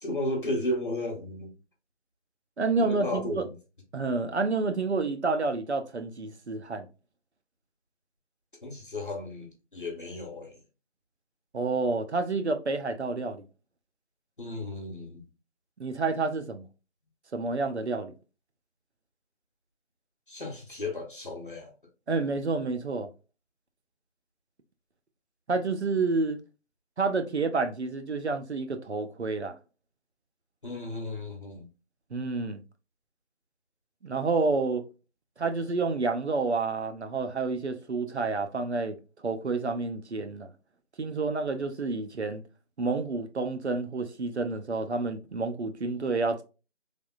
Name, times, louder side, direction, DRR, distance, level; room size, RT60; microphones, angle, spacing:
voice 1, 0.0-1.5 2.8-3.5 8.6-10.6 14.4-15.2 20.3-21.7 30.6-31.7, left 1 dB, 45° left, 1.0 m, -34 dB
voice 2, 2.6-3.5 3.9-6.9 11.5-13.4 15.8-16.7 17.3-18.1 22.1-23.1 25.5-26.4 27.0-29.5 32.1-32.6 34.0-34.8 35.4-39.0 39.2-40.5 41.0-42.4 42.8-46.4, right 3 dB, 65° right, 0.6 m, -29 dB
3.4 x 2.5 x 2.4 m
figure-of-eight pair, 175°, 35 cm